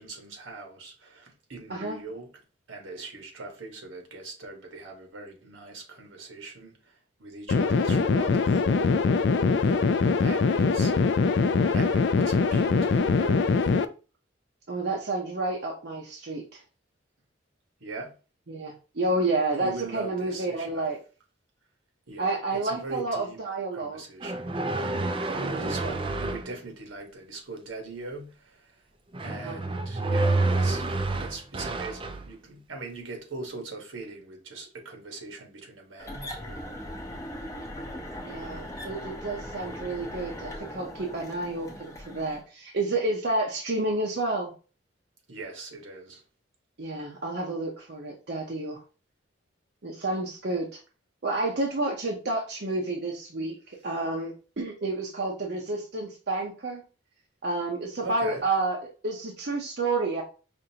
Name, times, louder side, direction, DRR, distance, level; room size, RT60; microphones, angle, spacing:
voice 1, 0.0-2.3 2.7-6.7 7.2-9.1 9.6-10.9 11.7-13.8 17.8-18.1 19.6-20.8 22.1-22.3 22.6-23.4 23.7-24.5 25.1-28.6 29.2-36.7 45.3-46.2 58.0-58.4, right 3 dB, 80° right, 1.3 m, -41 dB
sound 1, 7.5-13.8, left 4 dB, 60° left, 0.3 m, -23 dB
voice 2, 14.7-16.6 18.5-21.0 22.2-24.0 25.4-25.7 29.3-29.6 38.2-44.5 46.8-48.8 49.8-50.8 51.2-56.8 57.4-60.2, right 2 dB, 55° right, 0.7 m, -30 dB
sound 2, 24.2-26.5 29.1-32.3, right 2 dB, 25° right, 0.4 m, -28 dB
sound 3, 36.0-42.4, equal, 15° left, 0.7 m, -39 dB
5.1 x 2.6 x 2.8 m
head